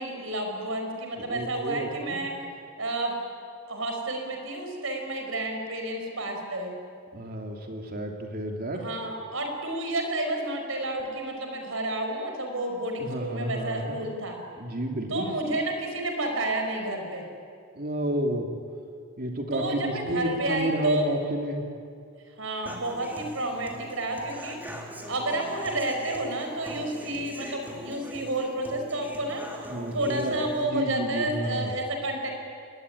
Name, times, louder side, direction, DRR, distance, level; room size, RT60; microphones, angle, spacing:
voice 1, 0.0-2.3 2.8-3.2 3.7-6.8 8.7-14.4 15.1-17.2 19.5-21.1 22.4-24.6 25.1-29.4 29.9-32.3, right 1 dB, 75° right, 3 dB, 5.5 m, -30 dB
voice 2, 1.2-2.2 7.1-8.8 13.0-13.9 14.6-15.3 17.7-18.5 19.2-21.6 29.7-30.4 30.7-31.7, right 1 dB, 45° right, 2 dB, 3.0 m, -31 dB
Human voice / Acoustic guitar, 22.7-30.6, equal, 10° right, 3.0 m, -42 dB
27.5 x 21.0 x 9.9 m, 2.3 s
head